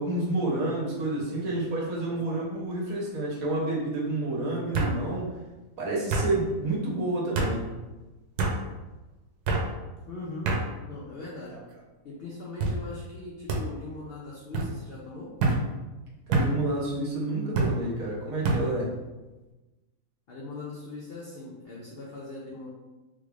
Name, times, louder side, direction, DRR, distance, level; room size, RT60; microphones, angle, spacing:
voice 1, 0.0-5.3 5.8-7.7 16.3-18.9, right 2 dB, 65° right, -3 dB, 1.3 m, -29 dB
sound 1, 1.3-1.7 2.1-2.6 3.7-3.8 4.7-5.0 6.1-6.3 7.3-7.5 8.4-8.6 9.4-9.7 10.4-10.6 11.4-11.8 12.6-12.8 13.5-13.6 14.5-14.7 15.4-15.6 16.3-16.5 17.5-17.7 18.4-18.6, right 3 dB, 85° right, 1.2 m, -27 dB
voice 2, 10.1-10.5 10.9-11.6 12.0-15.3 20.3-22.7, left 2 dB, 65° left, -5 dB, 0.6 m, -40 dB
3.5 x 3.2 x 2.4 m, 1.1 s
omnidirectional pair, 1.6 m